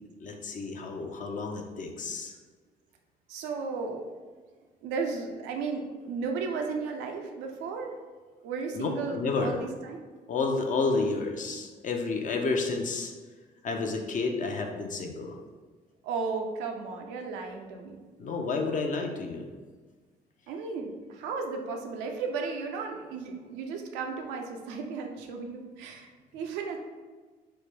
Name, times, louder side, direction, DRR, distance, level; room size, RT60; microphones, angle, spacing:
voice 1, 0.2-2.3 8.7-9.6 10.3-13.1 13.6-15.3 18.2-19.5, left 3 dB, 45° left, 3 dB, 0.5 m, -30 dB
voice 2, 3.3-4.1 4.8-7.9 8.4-10.0 16.0-18.1 20.5-26.8, right 4 dB, 90° right, 3 dB, 0.4 m, -34 dB
3.2 x 2.1 x 3.3 m, 1.4 s
supercardioid pair, 60°, 17 cm